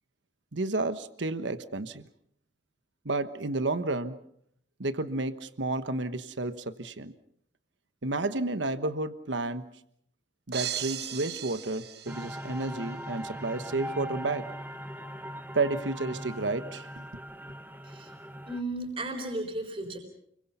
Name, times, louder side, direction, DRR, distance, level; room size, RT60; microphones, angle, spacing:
voice 1, 0.5-2.1 3.0-4.2 4.8-7.1 8.0-9.7 10.5-14.5 15.5-17.0, right 2 dB, 80° right, 11 dB, 1.2 m, -31 dB
sound 1, 10.5-12.8, right 10 dB, 60° right, 1.1 m, -37 dB
sound 2, 12.1-18.6, equal, 10° right, 1.1 m, -40 dB
voice 2, 18.5-20.0, right 1 dB, 30° right, 3 dB, 4.2 m, -34 dB
29.5 x 23.0 x 5.6 m, 0.70 s
head